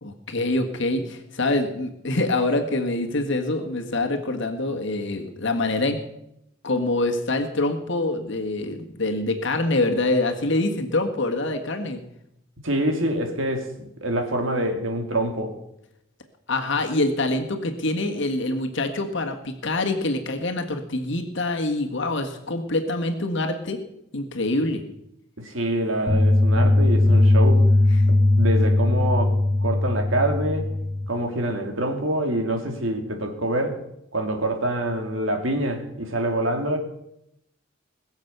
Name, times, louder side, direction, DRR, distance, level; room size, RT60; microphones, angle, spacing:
voice 1, 0.0-6.0 6.6-12.0 16.5-23.8 24.1-24.8, left 2 dB, 65° left, 4 dB, 1.7 m, -25 dB
voice 2, 12.6-15.5 25.4-27.7 28.1-30.7 31.1-33.8 34.1-36.8, right 1 dB, 75° right, 5 dB, 2.6 m, -26 dB
sound 1, 26.1-31.1, left 2 dB, 20° left, 2.1 m, -19 dB
21.0 x 7.3 x 6.8 m, 0.81 s
head